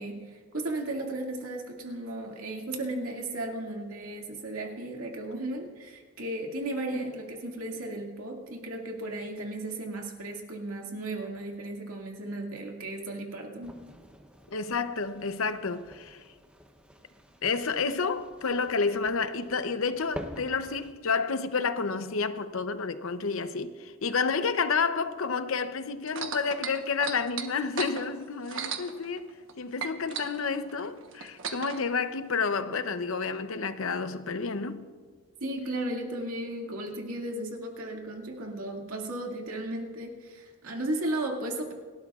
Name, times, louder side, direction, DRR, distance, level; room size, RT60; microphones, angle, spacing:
voice 1, 0.0-13.8 35.4-41.7, right 1 dB, 85° right, 2.2 m, -35 dB
sound 1, 13.6-20.9, equal, 5° right, 0.8 m, -47 dB
voice 2, 14.5-16.2 17.4-34.8, left 5 dB, 70° left, 0.7 m, -30 dB
sound 2, 26.1-29.5 29.8-31.8 32.6-32.7, right 6 dB, 60° right, 1.1 m, -36 dB
29.0 x 12.5 x 2.4 m
head